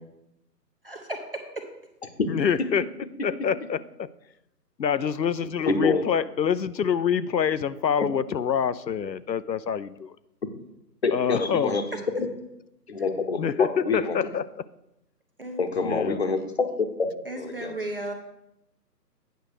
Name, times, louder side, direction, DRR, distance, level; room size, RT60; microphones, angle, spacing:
voice 1, 0.8-1.6 11.9-12.0 15.4-15.7 17.2-18.1, right 2 dB, 35° right, 3 dB, 0.7 m, -34 dB
voice 2, 2.3-2.9 3.2-4.1 4.8-10.2 11.1-11.8 13.4-14.6 15.8-16.2, left 7 dB, 85° left, 16 dB, 0.6 m, -26 dB
voice 3, 5.7-6.0 11.0-11.8 12.1-12.3 12.9-14.2 15.6-17.1 17.4-17.7, left 4 dB, 40° left, 7 dB, 0.9 m, -26 dB
9.1 x 6.0 x 4.8 m, 0.86 s
figure-of-eight pair, 145°, 50 cm